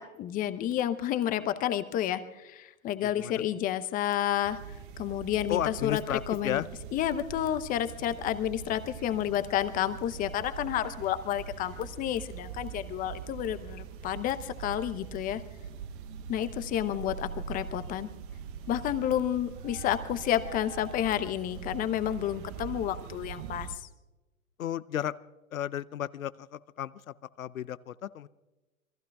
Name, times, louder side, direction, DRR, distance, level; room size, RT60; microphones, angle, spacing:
voice 1, 0.0-4.6 5.0-6.0 6.3-6.6 6.9-15.4 16.3-18.1 18.7-23.7, left 11 dB, 20° left, 12 dB, 0.8 m, -30 dB
voice 2, 3.0-3.3 5.5-6.7 24.6-25.1 25.5-28.3, left 10 dB, 75° left, 17 dB, 0.7 m, -33 dB
sound 1, 4.4-23.7, right 7 dB, 40° right, 0.9 m, -42 dB
27.5 x 22.0 x 2.4 m, 1.1 s
hypercardioid pair, 120°, 41 cm